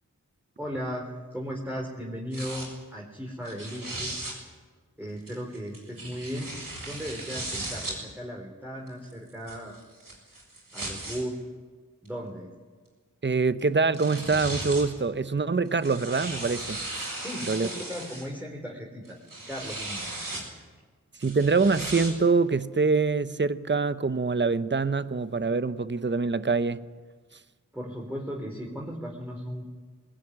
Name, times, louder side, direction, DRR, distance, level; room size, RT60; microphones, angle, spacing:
voice 1, 0.6-4.2 5.0-9.8 10.7-11.4 12.0-12.5 17.2-19.2 19.5-20.4 27.7-29.6, equal, 5° right, -2 dB, 3.9 m, -36 dB
sound 1, 2.3-2.7 3.4-4.3 5.3-8.0 8.9-11.2 12.1-12.2 13.6-13.7 13.9-14.9 15.7-18.2 19.0-20.4 21.2-22.1, right 2 dB, 85° right, 6.9 m, -36 dB
voice 2, 13.2-17.1 17.5-17.7 21.2-26.9, right 4 dB, 35° right, 13 dB, 0.8 m, -25 dB
20.5 x 19.0 x 10.0 m, 1.4 s
wide cardioid pair, 45°, 33 cm